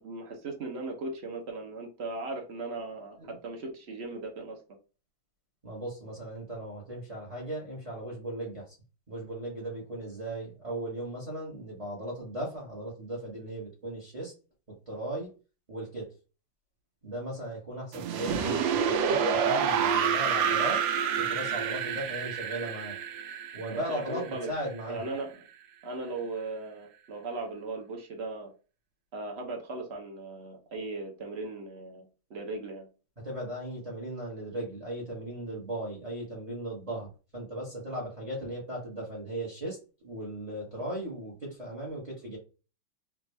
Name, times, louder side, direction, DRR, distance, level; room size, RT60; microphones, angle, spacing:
voice 1, 0.0-4.6 23.7-24.5 24.9-25.4 25.8-28.5 29.1-32.0 32.3-32.9, right 2 dB, 55° right, 2 dB, 0.7 m, -38 dB
voice 2, 5.6-8.7 9.1-14.3 14.9-15.3 15.7-16.1 17.0-20.8 21.2-23.0 23.5-25.1 33.2-39.8 40.0-42.4, right 1 dB, 25° right, -3 dB, 0.9 m, -37 dB
sound 1, 17.9-24.8, right 7 dB, 80° right, 1.3 m, -28 dB
3.5 x 2.5 x 3.1 m, 0.33 s
omnidirectional pair, 2.1 m